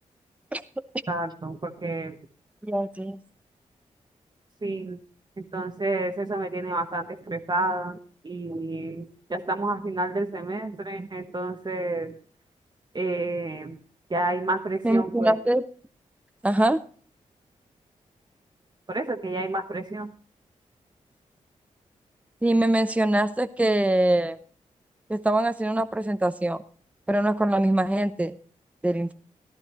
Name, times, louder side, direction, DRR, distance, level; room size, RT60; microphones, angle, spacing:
voice 1, 1.1-2.1 4.6-5.0 5.4-8.0 8.2-12.1 12.9-13.8 14.1-15.3 18.9-20.1, right 2 dB, 30° right, 4 dB, 1.1 m, -30 dB
voice 2, 2.7-3.2 14.8-15.6 16.4-16.8 22.4-24.4 25.1-26.6 27.1-28.4 28.8-29.1, right 1 dB, 10° right, 11 dB, 0.8 m, -23 dB
15.0 x 11.5 x 3.0 m, 0.43 s
supercardioid pair, 40°, 14 cm